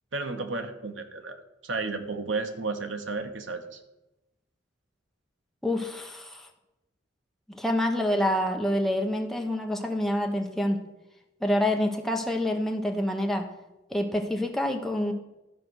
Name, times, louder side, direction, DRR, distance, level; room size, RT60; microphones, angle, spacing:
voice 1, 0.1-3.8, right 3 dB, 85° right, 7 dB, 1.1 m, -33 dB
voice 2, 5.6-6.5 7.5-10.8 11.4-13.5 13.9-15.1, left 1 dB, ahead, 3 dB, 0.9 m, -27 dB
13.0 x 5.1 x 6.3 m, 0.99 s
head